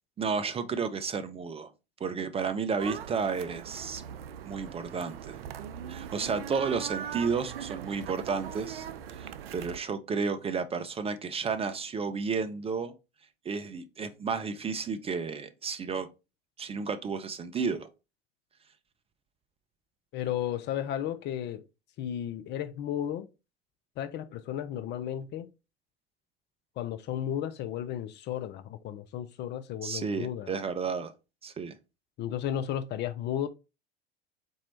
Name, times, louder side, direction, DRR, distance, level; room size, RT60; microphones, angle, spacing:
voice 1, 0.2-1.7 2.0-4.0 4.5-5.4 5.9-8.9 9.1-12.9 13.5-16.1 16.6-17.9 29.8-31.1 31.4-31.7, right 5 dB, 20° right, 0.5 m, -32 dB
sound 1, 2.8-9.8, right 9 dB, 75° right, 0.5 m, -40 dB
voice 2, 20.1-21.6 22.0-23.3 24.0-25.5 26.8-30.5 32.2-33.5, left 10 dB, 35° left, 0.4 m, -34 dB
4.2 x 2.7 x 4.3 m
hypercardioid pair, 80°, 30 cm